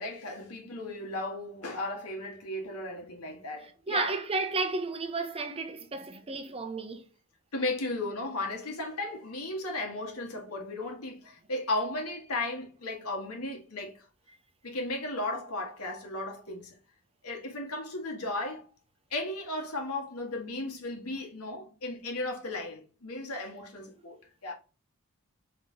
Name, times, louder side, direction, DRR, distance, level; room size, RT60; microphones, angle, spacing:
voice 1, 0.0-4.1 7.5-14.1 14.6-16.8 17.2-18.7 19.1-24.2 24.4-24.5, left 2 dB, 85° left, 1.6 m, -35 dB
voice 2, 3.6-7.1, right 3 dB, 25° right, 0.6 m, -33 dB
4.1 x 3.6 x 3.5 m
head